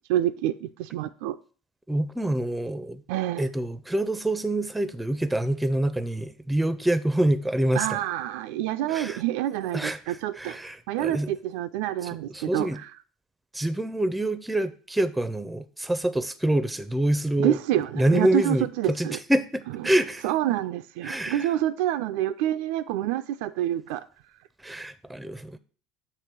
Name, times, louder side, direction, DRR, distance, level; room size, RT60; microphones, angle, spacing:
voice 1, 0.1-1.4 3.1-3.5 7.7-12.7 17.4-19.2 20.2-24.1, right 13 dB, 75° right, 0.3 m, -27 dB
voice 2, 1.9-3.0 3.4-8.0 8.9-9.2 9.7-11.3 12.3-12.8 13.5-17.6 18.0-20.2 21.0-21.5 24.6-25.6, right 1 dB, 5° right, 0.5 m, -26 dB
6.7 x 3.0 x 5.8 m
supercardioid pair, 95°, 0 cm